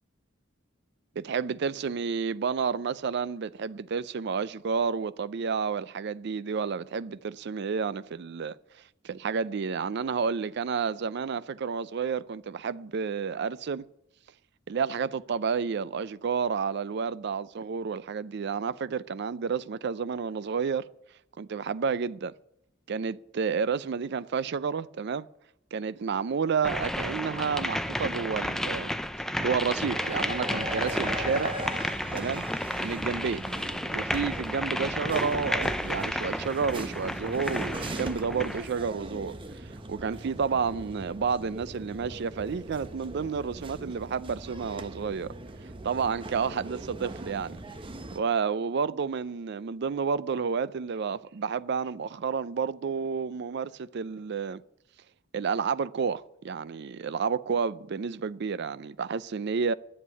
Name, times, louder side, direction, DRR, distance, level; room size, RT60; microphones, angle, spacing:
voice 1, 1.2-8.6 9.0-13.9 14.7-20.9 21.4-22.3 22.9-25.3 25.7-28.9 29.4-31.5 32.1-32.4 32.8-33.4 33.9-45.3 45.8-47.6 48.2-54.6 55.3-59.7, right 6 dB, 60° right, 0.4 m, -30 dB
sound 1, 26.6-38.7, left 1 dB, ahead, 0.5 m, -32 dB
sound 2, 29.8-48.2, right 1 dB, 25° right, 0.8 m, -39 dB
11.0 x 7.4 x 9.6 m
head